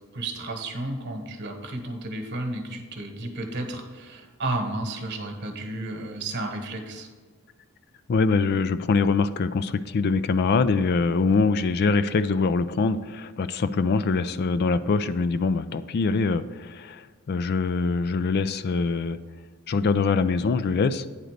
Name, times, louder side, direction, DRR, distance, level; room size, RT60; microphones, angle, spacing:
voice 1, 0.0-7.1, right 2 dB, 50° right, 4 dB, 1.2 m, -32 dB
voice 2, 8.1-19.2 19.7-21.1, left 4 dB, 45° left, 13 dB, 0.3 m, -23 dB
8.9 x 4.0 x 6.5 m, 1.5 s
head